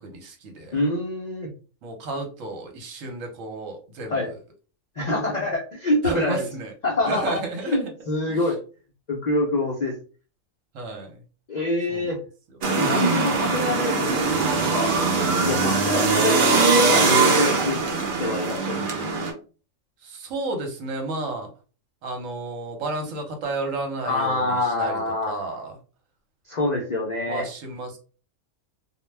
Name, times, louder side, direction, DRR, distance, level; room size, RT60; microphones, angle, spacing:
voice 1, 0.0-0.8 1.8-4.2 6.0-6.7 7.0-7.9 8.3-8.5 10.7-11.2 11.9-12.1 20.0-21.5 22.0-25.0 25.3-25.8 27.2-28.0, right 2 dB, 75° right, 4 dB, 1.1 m, -32 dB
voice 2, 0.7-1.5 4.1-4.3 5.0-6.5 6.8-8.6 9.1-9.9 11.5-12.2 12.8-14.9 15.3-17.8 18.2-18.9 24.0-25.4 26.5-27.5, left 2 dB, 60° left, -2 dB, 0.4 m, -26 dB
sound 1, 12.6-19.3, right 4 dB, 55° right, 0.6 m, -21 dB
2.3 x 2.1 x 3.2 m, 0.37 s
omnidirectional pair, 1.4 m